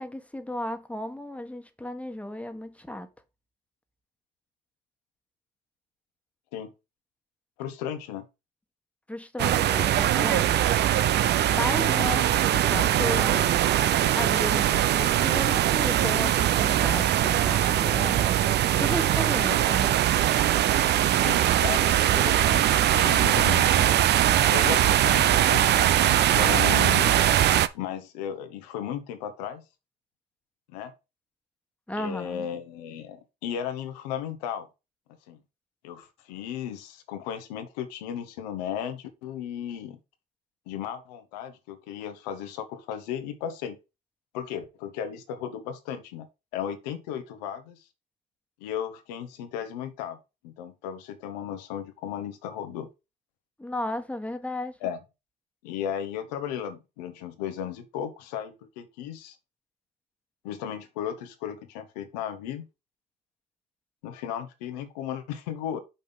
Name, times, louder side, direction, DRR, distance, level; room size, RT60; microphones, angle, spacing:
voice 1, 0.0-3.1 9.1-10.7 11.5-12.3 12.5-13.6 14.2-20.0 31.9-32.5 53.6-54.8, left 1 dB, 5° left, 1.4 m, -34 dB
voice 2, 7.6-8.2 19.5-19.7 21.2-23.9 24.5-27.2 27.7-29.6 30.7-30.9 32.0-34.7 35.3-35.4 35.8-40.0 40.7-43.8 44.3-46.3 46.5-47.8 48.6-50.2 50.4-52.9 54.8-55.0 55.6-59.4 60.4-62.6 64.0-65.8, left 9 dB, 90° left, 1.3 m, -35 dB
sound 1, 9.4-27.7, right 12 dB, 60° right, 0.6 m, -21 dB
5.8 x 5.3 x 5.3 m
supercardioid pair, 70°, 20 cm